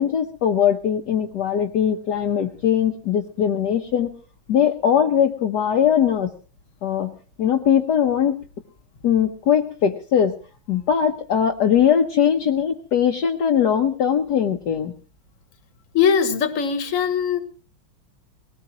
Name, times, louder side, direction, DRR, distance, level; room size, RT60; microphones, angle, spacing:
voice 1, 0.0-4.1 4.5-6.3 6.8-7.1 7.4-8.4 9.0-10.3 10.7-14.9, left 8 dB, 60° left, 3 dB, 1.5 m, -20 dB
voice 2, 15.9-17.4, left 7 dB, 45° left, 9 dB, 1.7 m, -20 dB
20.5 x 18.5 x 3.0 m, 0.36 s
omnidirectional pair, 2.2 m